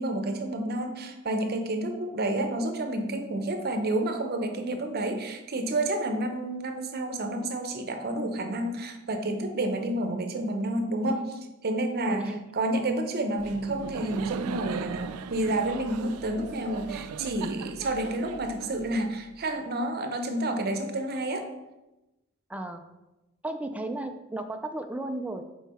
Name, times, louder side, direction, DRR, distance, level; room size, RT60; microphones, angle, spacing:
voice 1, 0.0-11.2 11.6-12.2 12.5-21.5, right 1 dB, 45° right, 6 dB, 0.7 m, -29 dB
voice 2, 12.1-12.4 22.5-22.9 23.4-25.4, right 1 dB, 5° right, 5 dB, 0.3 m, -34 dB
Laughter, 13.4-19.2, right 6 dB, 85° right, 0.3 m, -38 dB
5.5 x 4.6 x 4.2 m, 1.0 s
head